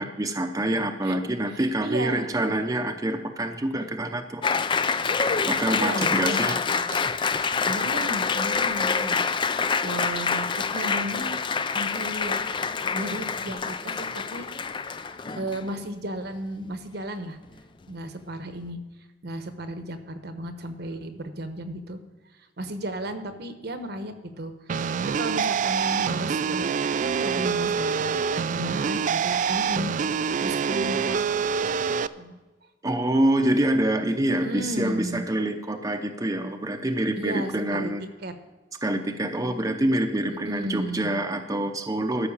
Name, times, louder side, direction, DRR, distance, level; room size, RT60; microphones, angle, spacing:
voice 1, 0.0-4.4 5.4-6.5 32.8-38.0 38.8-42.3, right 1 dB, 20° right, 4 dB, 0.7 m, -26 dB
voice 2, 1.5-2.3 5.7-6.6 6.9-7.1 7.6-9.2 9.8-12.5 12.9-14.5 14.9-17.4 17.9-18.8 19.2-22.0 22.6-24.5 25.0-26.7 27.0-29.9 30.2-31.4 32.1-32.4 34.3-35.3 37.2-38.3 40.3-41.1, right 1 dB, 65° right, 8 dB, 1.0 m, -34 dB
Applause, 4.4-15.8, left 5 dB, 25° left, 0.4 m, -26 dB
sound 1, 24.7-32.1, right 6 dB, 45° right, 0.3 m, -26 dB
13.0 x 5.8 x 7.2 m, 1.2 s
head